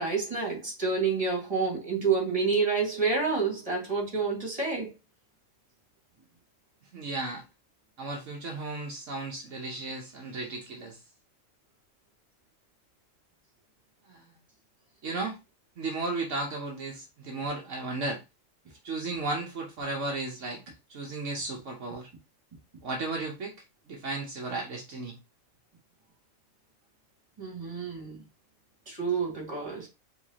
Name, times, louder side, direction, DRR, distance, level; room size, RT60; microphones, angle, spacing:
voice 1, 0.0-4.9 27.4-28.2 28.9-29.9, right 4 dB, 25° right, 2.1 m, -28 dB
voice 2, 6.9-7.4 8.0-11.0 14.1-14.3 15.0-15.4 15.8-18.2 18.8-20.6 20.9-22.1 22.8-23.5 23.9-25.2, right 2 dB, 70° right, 1.2 m, -34 dB
4.8 x 3.3 x 2.8 m
omnidirectional pair, 1.4 m